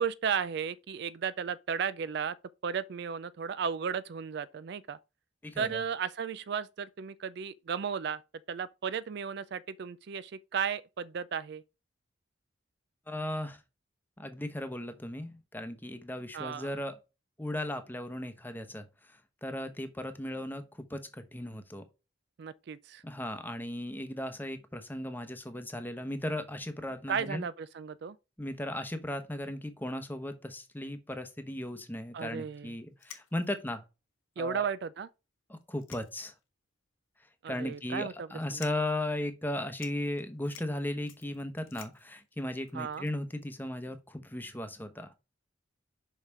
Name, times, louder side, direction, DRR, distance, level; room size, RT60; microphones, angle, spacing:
voice 1, 0.0-2.4 2.6-5.0 5.6-8.2 8.5-11.6 16.3-16.7 22.4-23.0 27.1-28.2 32.1-32.7 34.4-35.1 37.4-38.6 42.7-43.1, right 7 dB, 55° right, 0.4 m, -34 dB
voice 2, 5.4-5.8 13.1-13.6 14.2-16.9 17.4-18.9 19.4-20.6 20.9-21.8 23.0-27.4 28.4-33.8 34.4-34.7 35.5-36.3 37.5-45.1, left 1 dB, 10° left, 0.9 m, -36 dB
sound 1, 32.5-32.6 33.0-33.7 34.3-34.4 34.7-34.8 35.6-36.5 36.9-37.0 37.7-38.0 38.5-39.0 39.4-39.5 39.7-43.4, left 9 dB, 85° left, 1.3 m, -52 dB
5.7 x 5.4 x 4.7 m
head